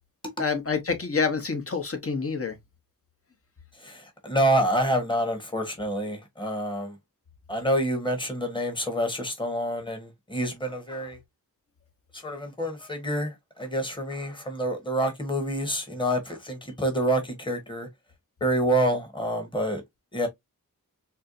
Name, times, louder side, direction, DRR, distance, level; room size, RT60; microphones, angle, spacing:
voice 1, 0.4-2.6, left 5 dB, 40° left, 1.0 m, -27 dB
voice 2, 3.8-6.9 7.5-11.2 12.1-17.9 18.4-19.8 20.1-20.3, right 1 dB, 15° left, 1.2 m, -27 dB
4.3 x 2.1 x 2.5 m
wide cardioid pair, 60°, 35 cm